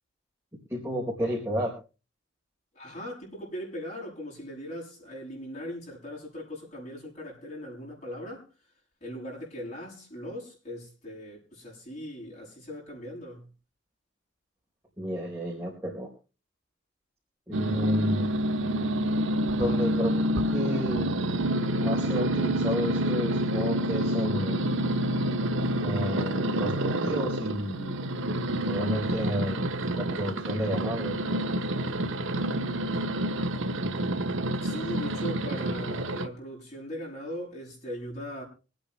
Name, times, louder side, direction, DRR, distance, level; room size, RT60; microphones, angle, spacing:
voice 1, 0.7-1.7 15.0-16.1 17.5-18.3 19.5-20.2 20.5-21.1 21.8-24.7 25.8-28.0 28.7-31.2, equal, 15° right, 4.1 m, -31 dB
voice 2, 2.7-8.5 9.0-13.5 34.6-38.4, equal, 35° left, 7.8 m, -39 dB
sound 1, 17.5-36.3, right 1 dB, 85° right, 1.1 m, -28 dB
26.0 x 9.1 x 3.3 m
head